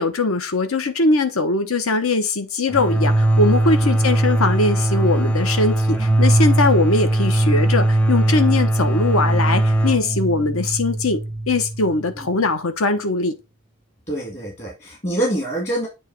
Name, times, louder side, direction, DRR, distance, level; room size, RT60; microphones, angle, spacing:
voice 1, 0.0-11.2 11.5-13.3, left 3 dB, 75° left, 1.0 m, -21 dB
sound 1, 2.7-12.2, right 1 dB, 5° left, 0.7 m, -19 dB
voice 2, 14.1-15.9, right 1 dB, 30° left, 1.9 m, -25 dB
8.2 x 3.1 x 4.5 m
head